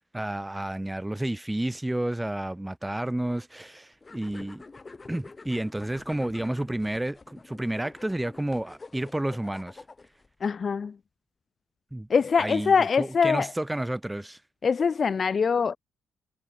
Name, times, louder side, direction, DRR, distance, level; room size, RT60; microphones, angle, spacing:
voice 1, 0.1-4.6 5.1-9.8 11.9-12.1 12.4-14.4, right 1 dB, 10° right, 2.4 m, -31 dB
sound 1, 4.0-10.3, left 3 dB, 25° left, 4.5 m, -47 dB
voice 2, 10.4-10.9 12.1-13.5 14.6-15.8, left 5 dB, 40° left, 0.8 m, -23 dB
cardioid pair, 90°, 0 cm